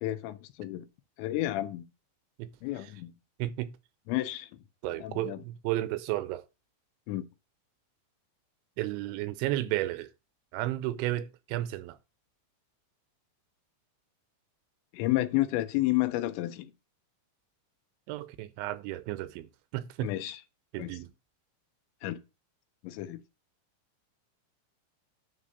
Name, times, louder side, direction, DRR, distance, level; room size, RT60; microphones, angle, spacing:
voice 1, 0.0-0.9 1.2-1.9 2.6-3.1 4.1-4.5 5.0-5.4 7.1-7.3 14.9-16.7 20.0-20.4 20.8-20.9 22.0-22.2 22.8-23.2, left 16 dB, 80° left, 2.9 m, -31 dB
voice 2, 3.4-3.7 4.8-6.5 8.8-10.1 10.5-12.0 18.1-20.1 20.7-21.1, right 15 dB, 90° right, 3.1 m, -33 dB
9.7 x 3.6 x 6.5 m
omnidirectional pair, 5.2 m